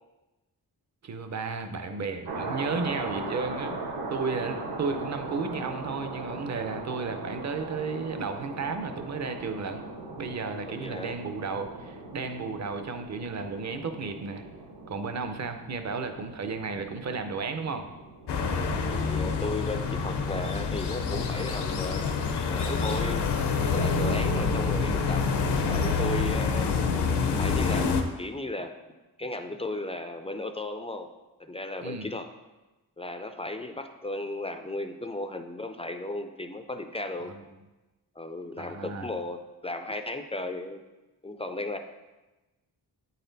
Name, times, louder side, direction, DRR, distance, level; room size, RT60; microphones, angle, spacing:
voice 1, 1.0-3.7 4.1-9.8 10.2-14.4 14.9-17.9 31.8-32.1 37.3-37.4 38.6-39.1, right 4 dB, 45° right, 8 dB, 0.6 m, -33 dB
sound 1, 2.2-18.8, right 2 dB, 70° right, 1.3 m, -39 dB
voice 2, 10.6-11.2 18.9-22.1 22.5-23.3 23.7-25.3 25.6-26.7 27.2-28.8 29.2-31.1 31.4-32.3 33.0-37.3 38.2-40.8 41.2-41.8, left 2 dB, 15° left, 7 dB, 0.3 m, -35 dB
sound 2, 18.3-28.0, left 4 dB, 80° left, 0.7 m, -27 dB
8.4 x 4.2 x 3.9 m, 1.1 s
wide cardioid pair, 120°, 40 cm